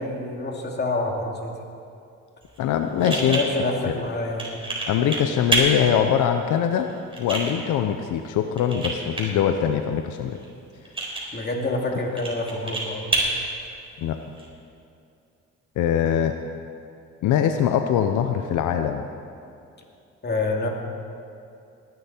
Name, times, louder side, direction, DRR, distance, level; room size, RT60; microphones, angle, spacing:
voice 1, 0.0-1.5 2.9-4.6 11.3-13.2 20.2-20.7, left 2 dB, 35° left, 0 dB, 2.4 m, -27 dB
sound 1, 2.4-14.4, right 2 dB, 20° right, 3.9 m, -31 dB
voice 2, 2.6-3.4 3.9-4.0 4.9-6.9 7.2-10.4 14.0-14.2 15.8-16.3 17.2-19.0, left 9 dB, 80° left, 7 dB, 0.7 m, -22 dB
19.5 x 10.5 x 4.4 m, 2.5 s
cardioid pair, 90°, 30 cm